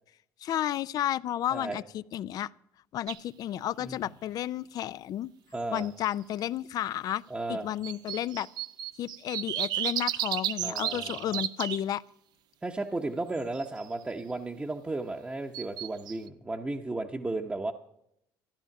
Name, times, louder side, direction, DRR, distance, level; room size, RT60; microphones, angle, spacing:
voice 1, 0.4-2.5 2.9-5.3 5.7-7.2 7.5-8.5 9.0-12.0, left 12 dB, 55° left, 18 dB, 0.4 m, -32 dB
sound 1, 3.1-3.2 5.6-6.1 7.8-11.8 13.3-13.9 15.5-16.3, right 12 dB, 65° right, 0.5 m, -33 dB
voice 2, 5.5-5.9 7.3-7.7 10.6-11.4 12.6-17.7, right 2 dB, 15° right, 1 dB, 0.8 m, -34 dB
13.5 x 10.5 x 5.9 m, 0.77 s
supercardioid pair, 90°, 7 cm